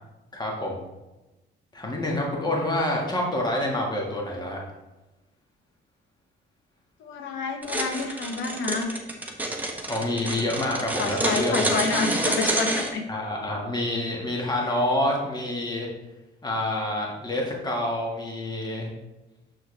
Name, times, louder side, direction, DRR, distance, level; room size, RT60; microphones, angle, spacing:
voice 1, 0.3-0.8 1.7-4.6 9.9-11.9 13.1-15.9 16.4-18.9, left 1 dB, 20° left, -1 dB, 1.7 m, -27 dB
voice 2, 7.0-9.0 10.3-10.5 11.0-13.0 14.5-14.7, left 4 dB, 80° left, 4 dB, 1.1 m, -29 dB
sound 1, 7.6-12.9, right 1 dB, 10° right, 1.2 m, -27 dB
6.4 x 6.3 x 3.3 m, 1.0 s
cardioid pair, 90°, 20 cm